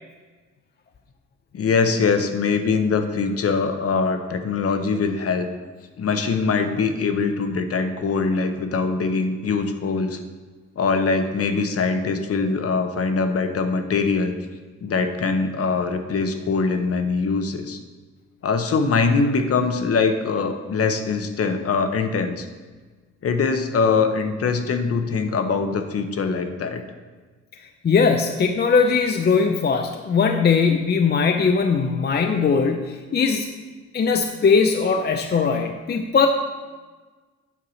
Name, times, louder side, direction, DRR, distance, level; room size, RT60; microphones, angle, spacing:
voice 1, 1.5-5.5 6.0-10.2 10.8-14.3 14.8-17.8 18.4-22.5 23.2-26.8, left 4 dB, 50° left, 7 dB, 1.0 m, -22 dB
voice 2, 27.8-33.5 33.9-36.3, left 5 dB, 35° left, 5 dB, 0.6 m, -20 dB
9.0 x 4.7 x 6.3 m, 1.4 s
cardioid pair, 90°, 30 cm